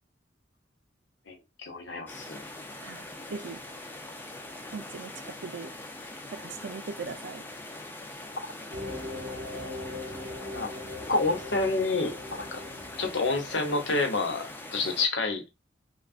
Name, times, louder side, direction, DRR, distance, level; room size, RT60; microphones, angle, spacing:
voice 1, 1.3-2.4 10.5-10.7 11.1-12.6 13.0-14.4 14.7-15.4, left 3 dB, 75° left, 0.8 m, -28 dB
sound 1, 2.1-15.1, left 2 dB, 10° left, 0.4 m, -42 dB
voice 2, 2.8-3.6 4.7-5.7 6.3-7.4, right 4 dB, 75° right, 0.4 m, -40 dB
sound 2, 8.7-14.3, left 2 dB, 55° right, 0.8 m, -41 dB
3.4 x 2.3 x 2.4 m
head